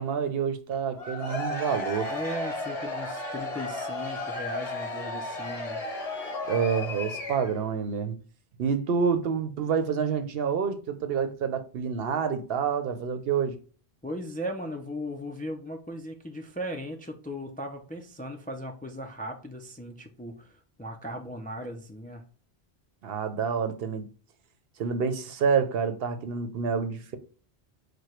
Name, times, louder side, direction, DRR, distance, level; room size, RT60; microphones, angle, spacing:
voice 1, 0.0-2.1 6.5-8.2 8.6-13.6 23.0-24.1 24.8-27.2, right 6 dB, 70° right, 0.8 m, -28 dB
Cheering / Crowd, 0.9-7.7, left 2 dB, 40° left, 1.1 m, -34 dB
voice 2, 2.1-5.8 14.0-22.2, equal, 15° left, 0.3 m, -37 dB
4.8 x 2.2 x 4.3 m
omnidirectional pair, 1.0 m